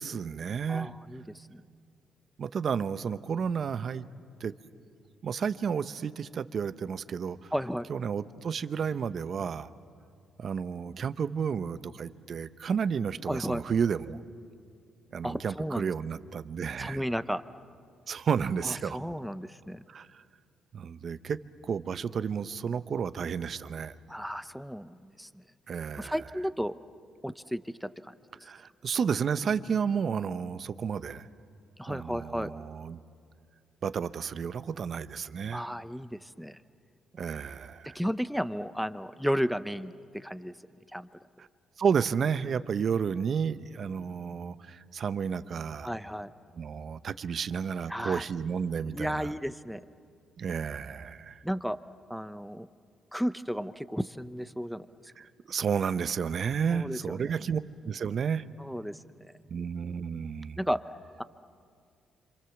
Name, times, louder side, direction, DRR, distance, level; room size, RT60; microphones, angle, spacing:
voice 1, 0.0-0.9 2.4-4.1 4.4-4.5 5.2-7.5 7.9-9.7 10.4-14.2 15.1-17.0 18.1-19.0 19.9-20.2 20.7-21.4 21.6-23.9 25.7-26.1 28.4-31.3 31.9-33.0 33.8-35.7 37.2-38.0 41.4-41.5 41.8-45.9 46.5-49.3 50.4-51.4 55.2-58.4 59.5-60.6, right 6 dB, 50° right, 13 dB, 0.8 m, -31 dB
voice 2, 0.7-1.6 7.5-7.9 13.2-13.6 15.2-15.9 16.8-17.4 18.6-19.8 24.1-25.3 26.0-26.8 27.2-28.1 31.8-32.5 35.5-36.6 37.9-40.5 40.9-41.1 45.8-46.3 47.9-48.3 48.9-49.8 51.4-51.8 52.1-52.7 53.1-54.9 56.7-57.3 58.6-59.3 60.6-60.8 61.2-61.3, equal, ahead, 13 dB, 0.7 m, -33 dB
27.5 x 26.5 x 7.1 m, 2.3 s
cardioid pair, 90°, 0 cm